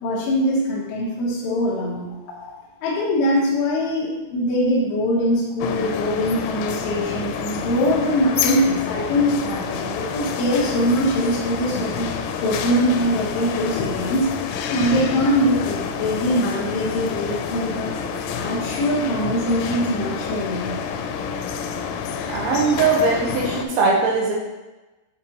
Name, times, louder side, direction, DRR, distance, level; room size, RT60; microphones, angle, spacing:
voice 1, 0.0-2.1 2.4-2.5 2.8-12.1 12.4-14.3 14.7-17.9 18.4-20.7, equal, 75° left, -6 dB, 2.4 m, -22 dB
sound 1, 5.6-23.7, left 6 dB, 90° left, 3.2 m, -28 dB
voice 2, 22.3-24.3, right 4 dB, 75° right, -2 dB, 3.0 m, -20 dB
6.7 x 6.2 x 3.0 m, 1.1 s
omnidirectional pair, 5.7 m